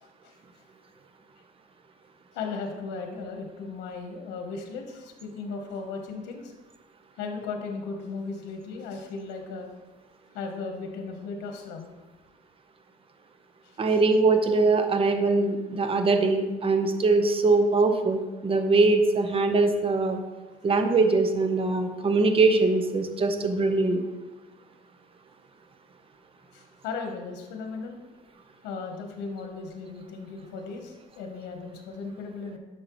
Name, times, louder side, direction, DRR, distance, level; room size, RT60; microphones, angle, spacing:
voice 1, 0.0-0.3 2.3-6.5 7.2-9.7 10.3-11.9 13.6-14.0 26.5-28.0 28.6-32.6, left 4 dB, 90° left, 3 dB, 1.1 m, -36 dB
voice 2, 13.8-20.2 20.6-24.0, right 3 dB, 35° right, 6 dB, 1.0 m, -22 dB
10.5 x 6.5 x 3.1 m, 1.2 s
cardioid pair, 110°, 17 cm